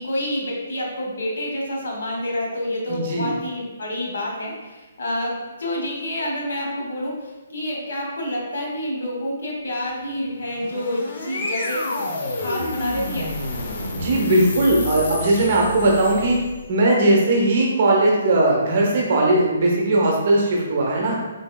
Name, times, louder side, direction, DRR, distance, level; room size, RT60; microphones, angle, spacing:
voice 1, 0.0-7.2 7.5-12.0 12.3-13.3, left 1 dB, 75° left, -2 dB, 1.2 m, -28 dB
voice 2, 2.9-3.3 13.9-16.4 16.7-21.2, right 2 dB, 45° right, -1 dB, 0.8 m, -18 dB
sound 1, 10.4-16.7, left 2 dB, 45° left, 0.5 m, -30 dB
4.0 x 3.3 x 2.2 m, 1.2 s
hypercardioid pair, 165°, 0 cm